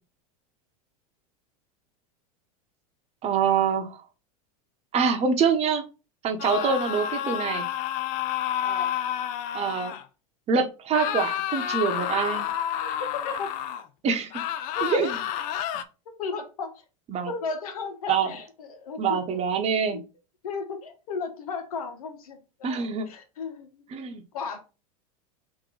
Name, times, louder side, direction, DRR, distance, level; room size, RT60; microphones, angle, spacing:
voice 1, 3.2-4.0 4.9-5.8 6.2-7.6 9.5-9.9 10.5-12.5 14.0-14.4 14.8-15.2 17.1-17.3 18.1-18.3 19.0-20.0 22.6-23.1 23.9-24.2, right 6 dB, 35° right, 1.0 m, -25 dB
sound 1, 6.4-10.0 10.9-13.8 14.3-15.8, left 10 dB, 50° left, 0.6 m, -30 dB
voice 2, 8.6-8.9 12.8-13.5 14.7-14.9 16.2-16.8 17.3-19.4 19.9-20.0 20.4-22.8 23.1-23.8 24.3-24.6, left 4 dB, 80° left, 1.3 m, -34 dB
3.7 x 2.9 x 4.8 m
hypercardioid pair, 100°, 18 cm